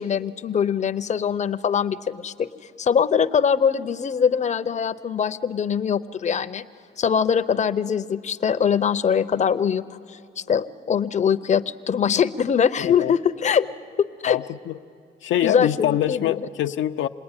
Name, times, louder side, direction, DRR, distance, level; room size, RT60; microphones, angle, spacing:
voice 1, 0.0-2.5 2.8-6.6 7.0-13.7 14.0-14.4 15.4-16.3, left 7 dB, 35° left, 10 dB, 0.7 m, -22 dB
voice 2, 12.8-13.1 14.3-14.8 15.2-17.1, left 12 dB, 75° left, 7 dB, 0.6 m, -24 dB
27.0 x 19.5 x 9.8 m, 2.4 s
cardioid pair, 90°, 20 cm